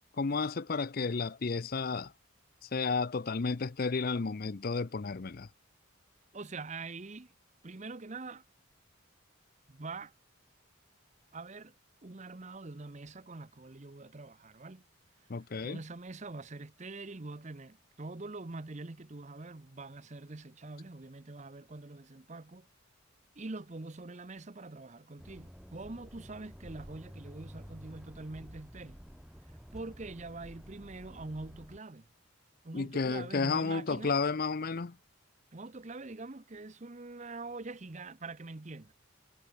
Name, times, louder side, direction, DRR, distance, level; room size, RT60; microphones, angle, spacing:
voice 1, 0.2-2.1 2.6-5.5 15.3-15.8 32.7-35.0, left 4 dB, 45° left, 0.5 m, -32 dB
voice 2, 6.3-7.3 7.6-8.4 9.7-10.1 11.3-11.7 12.0-14.8 15.6-22.7 23.4-29.0 29.7-32.1 32.6-34.1 35.5-38.9, right 3 dB, 35° right, 0.8 m, -44 dB
sound 1, 25.2-31.8, equal, ahead, 1.1 m, -50 dB
head